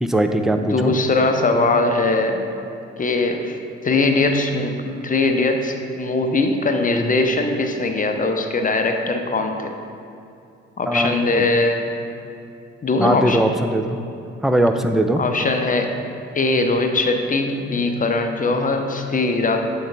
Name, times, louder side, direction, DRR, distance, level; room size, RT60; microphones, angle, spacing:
voice 1, 0.0-0.9 10.9-11.5 13.0-14.0 14.4-15.2, right 1 dB, ahead, 6 dB, 0.3 m, -20 dB
voice 2, 0.6-2.4 3.0-3.6 3.8-9.7 10.8-11.9 12.8-13.5 15.2-15.9 16.3-19.6, left 3 dB, 25° left, 5 dB, 0.7 m, -20 dB
7.6 x 4.6 x 3.4 m, 2.6 s
figure-of-eight pair, 40°, 35 cm